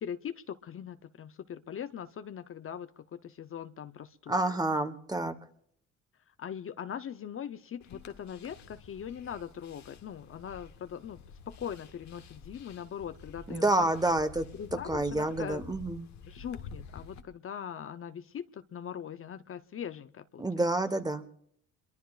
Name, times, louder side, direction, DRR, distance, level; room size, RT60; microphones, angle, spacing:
voice 1, 0.0-4.4 6.4-13.9 14.5-15.6 16.3-20.4, left 8 dB, 45° left, 11 dB, 0.7 m, -41 dB
voice 2, 4.3-5.3 13.5-14.5 14.9-16.1 20.4-21.2, right 2 dB, 15° right, 10 dB, 1.1 m, -28 dB
sound 1, 7.8-17.2, left 5 dB, 65° left, 1.3 m, -50 dB
27.0 x 22.5 x 2.4 m, 0.68 s
cardioid pair, 90°, 30 cm